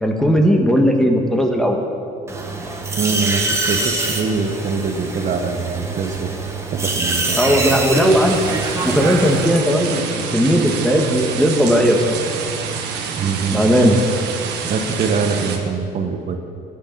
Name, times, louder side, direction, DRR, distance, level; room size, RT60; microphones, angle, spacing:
voice 1, 0.0-1.8 7.4-8.4 8.8-10.0 10.3-12.2 13.5-14.0, equal, 5° left, 2 dB, 1.4 m, -16 dB
sound 1, 2.3-9.5, right 2 dB, 15° right, 1.5 m, -25 dB
voice 2, 3.0-6.3 6.7-7.8 13.2-14.0 14.6-16.4, right 5 dB, 45° right, 5 dB, 1.0 m, -23 dB
sound 2, 8.0-15.6, right 6 dB, 85° right, 1.4 m, -27 dB
14.0 x 9.0 x 5.4 m, 2.5 s
cardioid pair, 110°, 17 cm